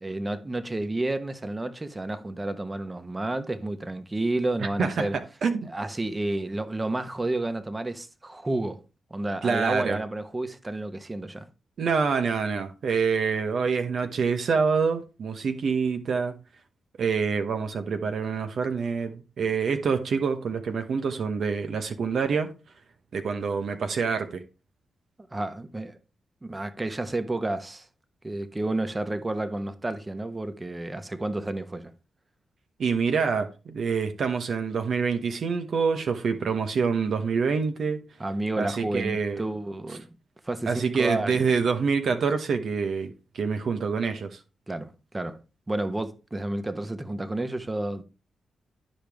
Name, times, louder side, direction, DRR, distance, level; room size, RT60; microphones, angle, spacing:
voice 1, 0.0-5.2 5.6-8.8 9.1-11.5 25.3-26.0 26.4-27.9 28.2-31.9 38.2-40.0 40.4-41.4 44.7-45.4 45.7-48.0, right 2 dB, 25° right, 1.2 m, -30 dB
voice 2, 9.4-10.0 11.8-16.3 17.0-22.5 23.1-24.4 32.8-38.0 38.6-39.4 40.7-44.4, right 5 dB, 70° right, 1.0 m, -26 dB
12.0 x 5.1 x 3.5 m
supercardioid pair, 55°, 0 cm